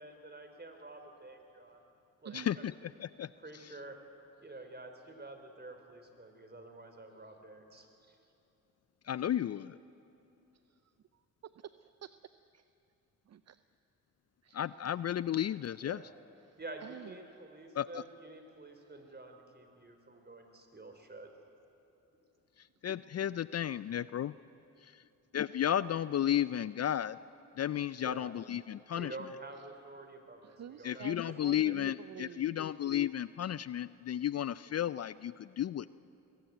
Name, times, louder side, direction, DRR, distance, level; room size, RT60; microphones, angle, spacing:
voice 1, 0.0-1.8 2.2-2.4 3.4-4.0 4.4-8.2 15.8-16.1 16.6-21.3 28.0-28.3 29.0-31.8, right 2 dB, 30° right, 6 dB, 3.6 m, -49 dB
voice 2, 2.2-2.7 10.7-10.9 11.4-12.1 12.5-12.6 13.3-13.6 14.4-14.9 16.4-17.2 18.8-18.9 30.4-32.8, right 9 dB, 50° right, 13 dB, 0.6 m, -50 dB
voice 3, 2.8-3.3 3.6-3.7 9.0-9.8 14.5-16.0 17.7-18.0 22.6-24.3 25.3-27.2 27.6-29.1 30.8-35.9, left 10 dB, 50° left, 17 dB, 0.4 m, -33 dB
21.5 x 15.0 x 9.3 m, 2.8 s
supercardioid pair, 55°, 34 cm